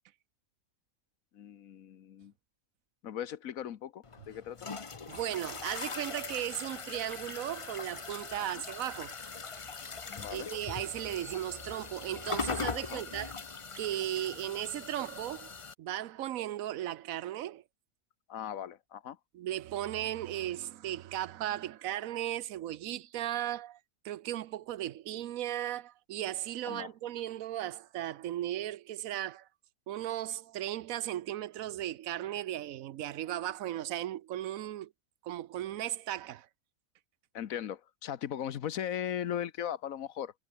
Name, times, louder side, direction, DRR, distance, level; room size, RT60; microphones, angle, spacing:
voice 1, 1.3-2.3 3.0-4.7 8.3-8.6 10.1-10.5 12.9-13.0 18.3-19.2 26.6-26.9 37.3-40.3, left 10 dB, 75° left, 1.3 m, -38 dB
sound 1, 4.0-15.7, left 5 dB, 30° left, 0.7 m, -41 dB
voice 2, 5.1-9.1 10.3-13.3 13.8-17.6 19.3-23.8 24.0-29.5 29.9-34.9 35.2-36.5, right 13 dB, 75° right, 1.1 m, -36 dB
omnidirectional pair, 1.5 m